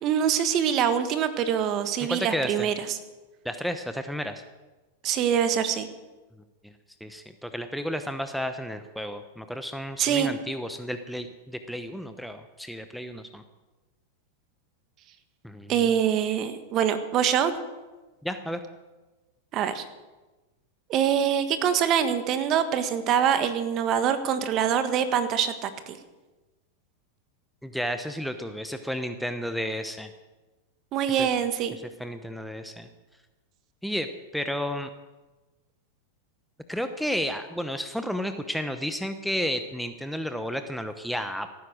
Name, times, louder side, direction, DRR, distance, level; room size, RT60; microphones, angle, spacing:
voice 1, 0.0-3.0 5.0-5.9 10.0-10.3 15.7-17.5 19.5-19.8 20.9-26.0 30.9-31.8, right 8 dB, 40° right, 10 dB, 1.4 m, -24 dB
voice 2, 2.1-2.7 3.4-4.4 6.6-6.7 7.0-13.4 15.4-15.7 18.2-18.6 27.6-30.1 31.1-31.3 32.0-32.9 33.8-34.1 34.3-34.9 36.7-41.6, equal, ahead, 8 dB, 0.8 m, -32 dB
17.0 x 9.7 x 6.3 m, 1.2 s
hypercardioid pair, 115°, 0 cm